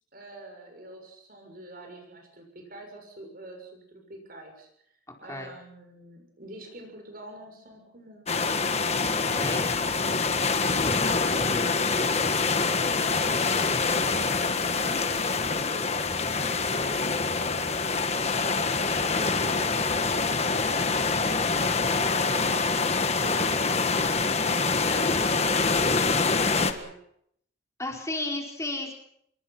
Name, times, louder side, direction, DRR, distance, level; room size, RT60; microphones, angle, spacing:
voice 1, 0.1-4.7 5.2-8.5 10.6-14.4 14.8-16.1 16.4-17.8 18.3-25.3 26.2-27.0, right 1 dB, 50° right, 3 dB, 6.7 m, -46 dB
sound 1, 8.3-26.7, left 4 dB, 35° left, 1.6 m, -25 dB
voice 2, 9.3-9.7 24.8-25.1 27.8-28.9, left 2 dB, 15° left, 1 dB, 4.6 m, -33 dB
27.0 x 22.0 x 6.0 m, 0.70 s
head